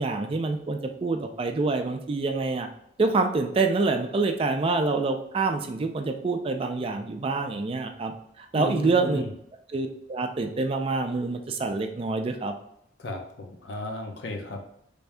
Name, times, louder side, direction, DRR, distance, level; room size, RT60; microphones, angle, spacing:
voice 1, 0.0-2.7 3.0-9.2 9.7-12.5, right 3 dB, 30° right, 5 dB, 0.3 m, -26 dB
voice 2, 8.5-9.3 13.0-14.7, left 1 dB, 65° left, 2 dB, 0.7 m, -35 dB
3.4 x 2.7 x 3.3 m, 0.73 s
head